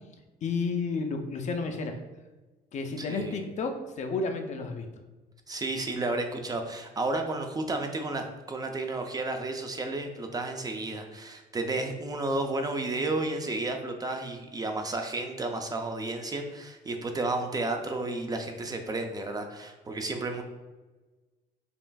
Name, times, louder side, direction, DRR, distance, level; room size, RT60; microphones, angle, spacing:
voice 1, 0.4-2.0 2.7-4.9, left 4 dB, 45° left, 5 dB, 0.4 m, -31 dB
voice 2, 3.0-3.4 5.5-20.4, right 2 dB, 20° right, 4 dB, 0.4 m, -32 dB
5.3 x 2.4 x 2.3 m, 1.2 s
cardioid pair, 110°, 17 cm